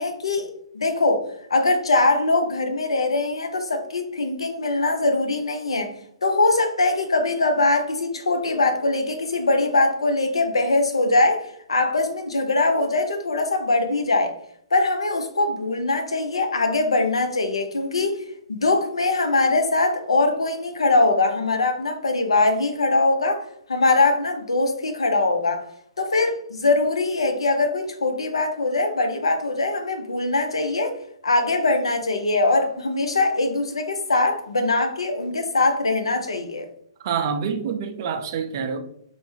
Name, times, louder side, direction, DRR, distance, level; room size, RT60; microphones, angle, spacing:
voice 1, 0.0-5.9 6.2-14.3 14.7-18.2 18.5-23.4 23.7-25.6 26.0-30.9 31.2-36.7, left 2 dB, 75° left, 0.5 m, -22 dB
voice 2, 37.0-38.8, right 6 dB, 45° right, 0.4 m, -26 dB
3.2 x 2.1 x 3.0 m
figure-of-eight pair, 125°, 3 cm